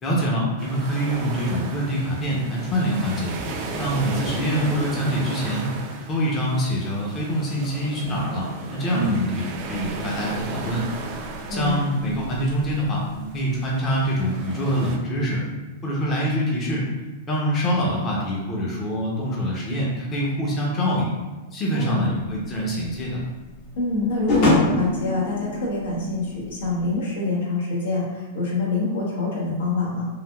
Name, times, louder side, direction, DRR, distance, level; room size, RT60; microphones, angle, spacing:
voice 1, 0.0-3.3 3.8-5.7 6.1-10.9 11.5-15.4 15.8-16.8 17.3-21.1 21.5-23.2, equal, 30° left, -4 dB, 0.7 m, -25 dB
sound 1, 0.6-15.0, right 3 dB, 50° right, 0.4 m, -35 dB
voice 2, 8.9-9.2 11.5-11.8 21.7-22.0 23.8-30.1, left 2 dB, 75° left, -4 dB, 1.0 m, -25 dB
sound 2, 22.2-26.9, left 2 dB, 50° left, 0.9 m, -25 dB
3.3 x 2.4 x 2.3 m, 1.2 s
hypercardioid pair, 115°, 0 cm